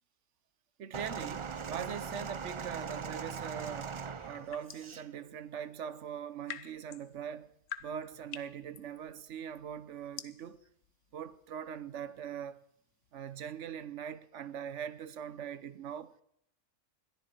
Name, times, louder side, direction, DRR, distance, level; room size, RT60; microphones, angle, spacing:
voice 1, 0.8-4.0 4.2-7.5 7.8-10.6 11.1-12.6 13.1-16.1, right 8 dB, 70° right, 1.2 m, -42 dB
sound 1, 0.9-5.1 5.9-6.1, right 6 dB, 45° right, 0.4 m, -40 dB
sound 2, 4.2-5.0 6.1-13.8, left 9 dB, 75° left, 1.1 m, -49 dB
21.5 x 13.0 x 4.5 m
omnidirectional pair, 1.3 m